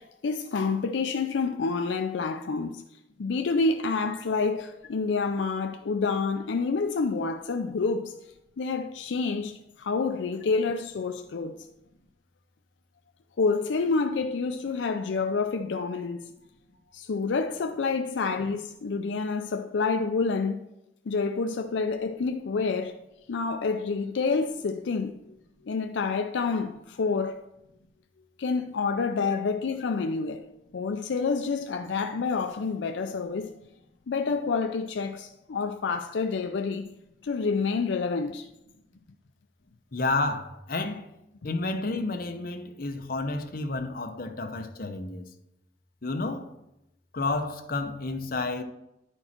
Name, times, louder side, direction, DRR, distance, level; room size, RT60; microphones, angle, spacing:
voice 1, 0.0-2.8 3.2-8.1 8.6-11.6 13.4-16.3 16.9-20.6 21.1-23.0 23.3-25.4 25.7-27.4 28.4-30.4 30.7-33.5 34.1-36.9 37.2-38.5, left 4 dB, 75° left, 0.4 m, -28 dB
voice 2, 39.9-41.1 41.4-45.2 46.0-46.5 47.1-48.6, left 3 dB, 50° left, 0.8 m, -30 dB
11.0 x 4.5 x 4.3 m
head